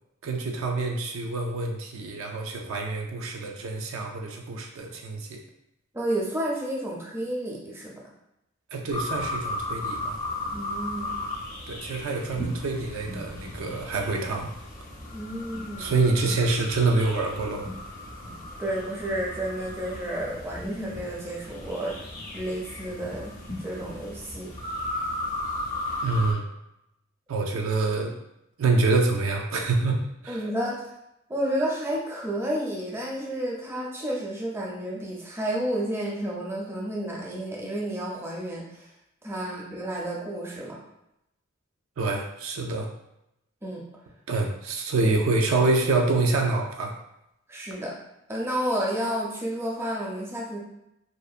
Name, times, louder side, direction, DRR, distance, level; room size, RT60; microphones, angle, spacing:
voice 1, 0.2-5.4 8.7-10.2 11.7-14.5 15.8-17.7 26.0-26.4 27.3-28.1 28.6-30.4 42.0-42.9 44.3-46.9, right 3 dB, 90° right, 1 dB, 0.4 m, -26 dB
voice 2, 5.9-7.9 10.5-11.2 15.1-15.9 18.6-22.0 22.3-23.3 23.6-24.5 30.3-30.8 31.3-38.9 39.2-40.8 43.6-43.8 47.5-47.9 48.3-50.6, right 1 dB, 10° right, -3 dB, 0.4 m, -31 dB
sound 1, 8.9-26.3, left 1 dB, 40° left, 0.5 m, -36 dB
2.7 x 2.1 x 2.3 m, 0.84 s
head